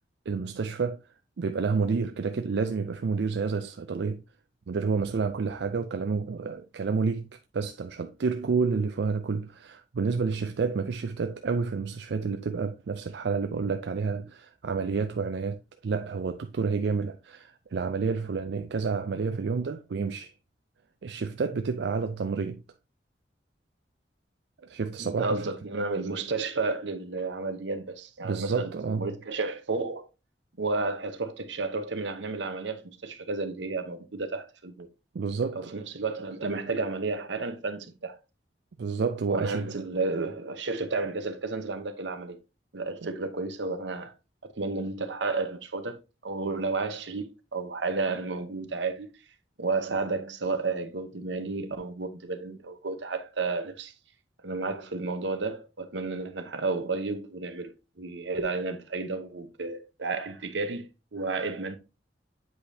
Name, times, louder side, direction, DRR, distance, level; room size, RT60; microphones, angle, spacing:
voice 1, 0.3-1.0 1.4-4.2 4.7-20.3 21.0-22.6 24.6-25.4 28.2-29.1 35.1-35.7 38.8-39.8, right 5 dB, 65° right, 0.4 m, -29 dB
voice 2, 25.0-28.7 29.0-30.1 30.6-34.9 35.7-38.2 39.3-42.4 42.7-44.1 44.4-49.1 49.6-53.9 54.4-61.8, right 3 dB, 80° right, 1.0 m, -32 dB
8.1 x 5.1 x 2.7 m
head